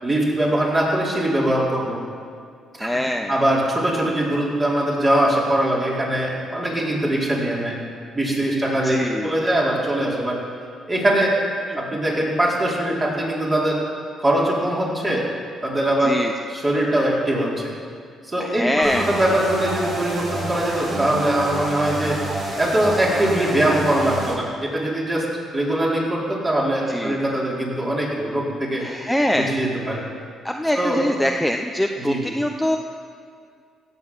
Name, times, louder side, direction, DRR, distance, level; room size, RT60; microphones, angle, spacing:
voice 1, 0.0-2.0 2.8-2.9 3.3-7.7 8.1-10.4 10.9-11.3 11.7-13.8 14.2-15.2 15.6-16.1 16.5-17.7 18.2-22.2 22.6-25.2 25.5-28.9 29.3-30.0 30.7-31.0 32.0-32.3, right 1 dB, 25° right, -5 dB, 4.5 m, -22 dB
voice 2, 2.8-3.4 8.8-9.3 16.0-16.3 18.4-19.1 26.9-27.2 28.8-29.5 30.4-32.8, equal, ahead, 3 dB, 0.7 m, -23 dB
sound 1, 18.8-24.3, right 2 dB, 55° right, 4.2 m, -29 dB
16.5 x 8.1 x 7.4 m, 2.3 s
cardioid pair, 90°, 0 cm